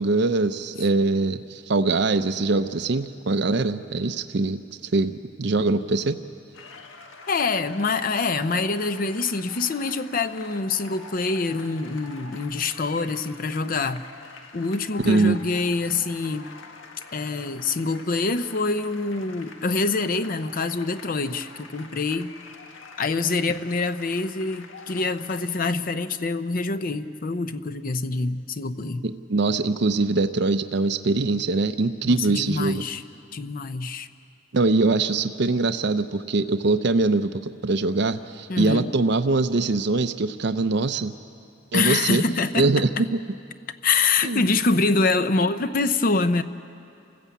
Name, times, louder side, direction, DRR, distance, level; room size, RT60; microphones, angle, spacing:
voice 1, 0.0-5.1 5.4-6.2 15.0-15.4 29.0-32.8 34.5-41.1 41.7-42.2 42.6-42.9 44.2-44.4, right 3 dB, 60° right, 9 dB, 0.6 m, -23 dB
sound 1, 6.5-25.5, left 4 dB, 85° left, 1.6 m, -45 dB
voice 2, 7.3-14.0 14.5-16.5 17.1-22.4 23.0-29.1 32.1-33.0 33.3-34.1 38.5-38.9 41.7-43.0 43.8-46.4, left 3 dB, 45° left, 11 dB, 0.6 m, -25 dB
29.0 x 14.5 x 8.3 m, 2.5 s
head